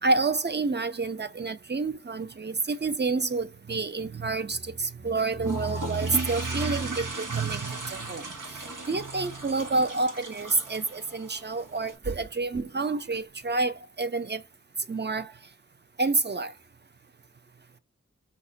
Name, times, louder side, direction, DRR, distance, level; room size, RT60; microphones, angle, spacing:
voice 1, 0.0-14.4 14.9-15.3 16.0-16.5, right 3 dB, 35° right, 0.5 m, -28 dB
sound 1, 5.4-12.0, right 3 dB, 85° right, 1.0 m, -37 dB
5.2 x 2.1 x 4.0 m
wide cardioid pair, 50°, 31 cm